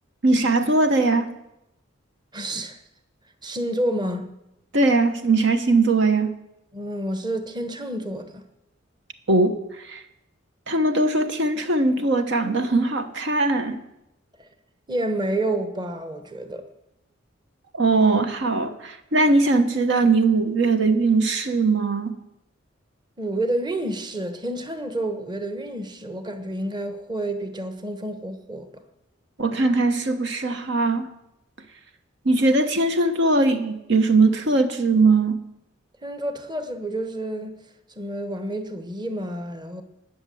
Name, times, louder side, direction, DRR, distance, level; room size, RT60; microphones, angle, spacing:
voice 1, 0.2-1.3 4.7-6.3 9.3-9.6 9.8-10.0 10.7-13.8 17.7-22.1 29.4-31.1 32.2-35.4, right 3 dB, 65° right, 1.1 m, -20 dB
voice 2, 2.3-2.8 3.4-4.3 6.7-8.4 14.4-14.5 14.9-16.6 23.2-28.7 36.0-37.6 38.0-39.8, right 1 dB, 20° right, 1.2 m, -29 dB
19.5 x 6.7 x 7.7 m
head